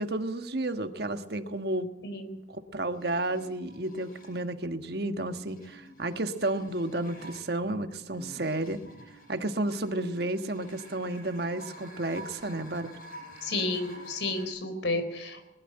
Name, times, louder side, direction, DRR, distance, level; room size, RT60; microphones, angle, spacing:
voice 1, 0.0-1.9 2.5-8.8 9.3-12.9, right 2 dB, 55° right, 9 dB, 1.5 m, -32 dB
voice 2, 2.0-2.4 13.4-15.5, left 2 dB, 70° left, 9 dB, 4.0 m, -31 dB
sound 1, 2.9-4.5 5.2-14.5, right 1 dB, 50° left, 7.2 m, -49 dB
21.0 x 12.5 x 9.9 m, 0.98 s
head